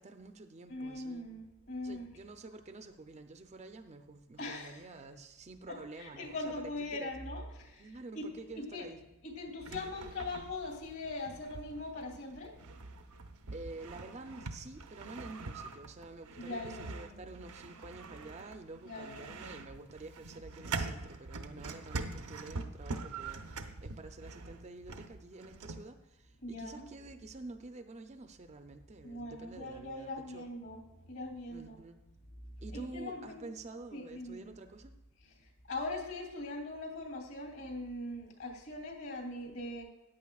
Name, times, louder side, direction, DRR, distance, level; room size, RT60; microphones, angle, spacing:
voice 1, 0.0-1.3 1.8-7.1 7.8-9.0 13.5-30.5 31.5-32.0 32.6-34.9, right 2 dB, 30° right, 7 dB, 0.5 m, -49 dB
voice 2, 0.7-2.1 4.4-4.8 5.7-8.9 9.2-12.6 16.4-17.4 18.8-19.6 26.4-26.9 29.0-31.8 32.4-33.5 33.9-34.5 35.4-39.8, left 2 dB, 60° left, 2 dB, 2.9 m, -41 dB
sound 1, 9.6-25.9, right 3 dB, 85° right, 0.8 m, -44 dB
14.0 x 10.0 x 2.4 m, 0.99 s
head